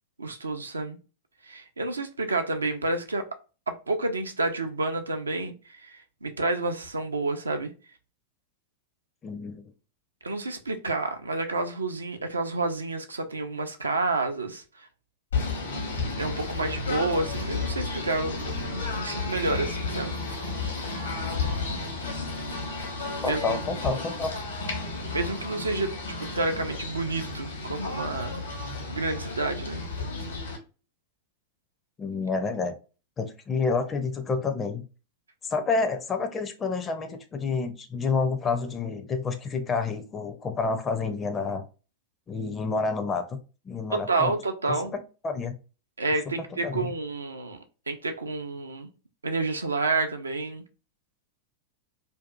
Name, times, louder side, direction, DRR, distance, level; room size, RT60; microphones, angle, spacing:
voice 1, 0.2-1.0 1.4-3.3 3.7-7.7 10.2-14.9 16.2-20.1 23.2-23.6 25.1-28.4 28.9-29.9 43.9-44.9 46.0-47.6 47.9-48.9 49.2-50.6, right 3 dB, 80° right, 0.4 m, -29 dB
voice 2, 9.2-9.6 23.2-24.3 32.0-32.7 33.2-34.8 35.4-41.6 42.3-43.4 43.7-44.3 45.2-45.5 46.6-46.9, left 4 dB, 20° left, 0.4 m, -29 dB
Singing / Bird, 15.3-30.6, left 3 dB, 70° left, 0.9 m, -32 dB
2.6 x 2.3 x 2.2 m
figure-of-eight pair, 95°, 0 cm